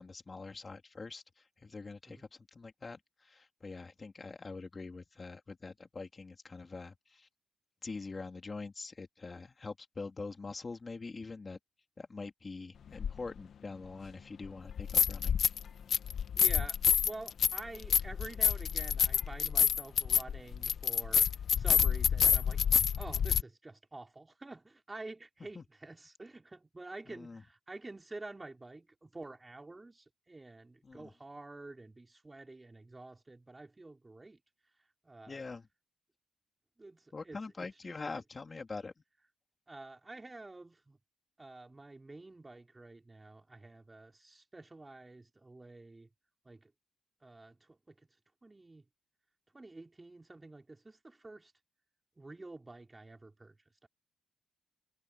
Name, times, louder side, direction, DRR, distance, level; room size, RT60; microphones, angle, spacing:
voice 1, 0.0-7.3 7.8-11.6 12.0-15.4 25.5-25.6 27.1-27.4 30.8-31.1 35.3-35.7 37.1-38.9, left 3 dB, 30° left, 3.2 m, -44 dB
sound 1, 13.0-13.1 14.7-15.6 15.9-23.4, left 8 dB, 55° left, 1.1 m, -28 dB
voice 2, 16.3-21.3 21.6-22.6 23.0-34.4 35.0-35.4 36.8-38.0 39.7-41.0 41.4-46.1 46.4-46.7 47.2-47.9 48.4-48.8 49.5-51.5 52.2-53.6 53.8-53.9, right 2 dB, 20° right, 4.8 m, -49 dB
cardioid pair, 95°, 0 cm